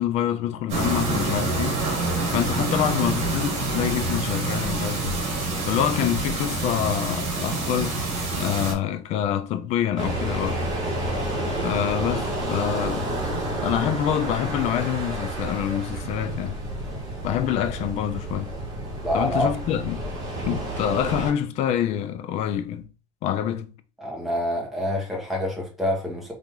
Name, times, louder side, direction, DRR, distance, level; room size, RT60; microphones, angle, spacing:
voice 1, 0.0-1.8 2.3-5.2 5.7-8.0 8.4-10.6 11.6-13.1 13.6-16.6 17.2-18.5 19.1-20.1 20.4-22.9 23.2-23.7, left 10 dB, 40° left, 0.5 m, -26 dB
sound 1, 0.7-8.7, right 2 dB, 40° right, 1.9 m, -26 dB
sound 2, 10.0-21.3, right 1 dB, 20° right, 2.5 m, -30 dB
voice 2, 19.0-19.5 24.0-26.3, left 1 dB, ahead, 1.3 m, -26 dB
4.0 x 3.4 x 3.7 m
cardioid pair, 170°, 17 cm